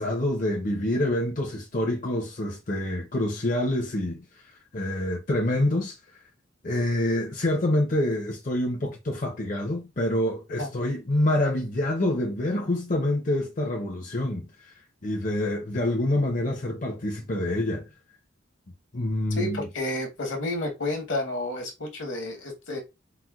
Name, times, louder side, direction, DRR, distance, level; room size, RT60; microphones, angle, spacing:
voice 1, 0.0-6.0 6.6-14.7 15.0-17.9 18.9-19.7, left 1 dB, 40° left, 0.6 m, -27 dB
voice 2, 19.4-22.8, left 2 dB, 65° left, 1.0 m, -30 dB
4.1 x 2.1 x 2.3 m
head